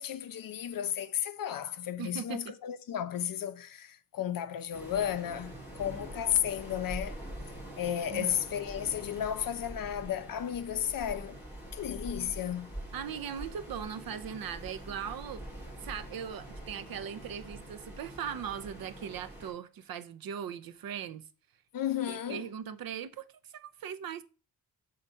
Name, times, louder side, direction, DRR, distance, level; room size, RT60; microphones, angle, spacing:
voice 1, 0.0-7.2 7.8-11.4 11.7-12.7 21.7-22.5, left 10 dB, 55° left, 0.7 m, -33 dB
voice 2, 2.0-2.4 8.1-8.3 12.9-15.4 15.8-21.3 22.0-23.3 23.5-24.2, right 8 dB, 60° right, 0.6 m, -39 dB
Waves surf, 4.7-19.5, right 1 dB, 5° right, 3.2 m, -45 dB
7.6 x 3.9 x 5.4 m
wide cardioid pair, 175°, 39 cm